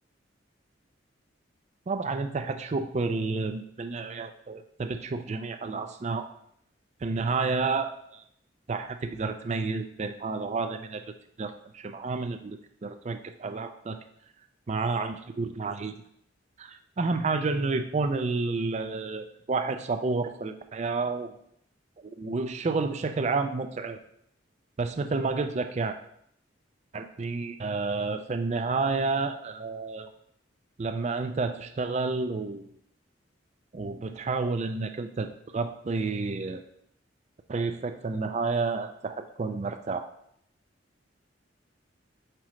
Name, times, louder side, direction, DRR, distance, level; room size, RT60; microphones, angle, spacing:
voice 1, 1.9-6.3 7.0-8.2 8.7-11.0 11.4-14.0 14.7-16.0 16.6-21.4 22.2-24.0 24.8-26.0 26.9-30.1 30.8-32.7 33.7-36.6 37.5-40.1, right 3 dB, 35° right, 8 dB, 0.4 m, -30 dB
7.6 x 3.1 x 4.9 m, 0.70 s
head